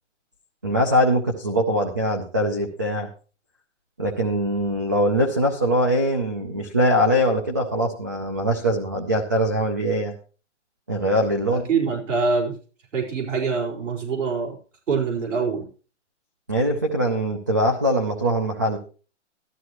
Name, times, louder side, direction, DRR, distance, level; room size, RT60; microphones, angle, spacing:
voice 1, 0.6-3.1 4.0-10.1 10.9-11.7 16.5-18.8, equal, 15° right, 2 dB, 0.5 m, -22 dB
voice 2, 11.5-12.5 12.9-14.6 14.9-15.6, right 5 dB, 85° right, -2 dB, 4.8 m, -24 dB
13.0 x 13.0 x 3.0 m, 0.37 s
hypercardioid pair, 175°, 36 cm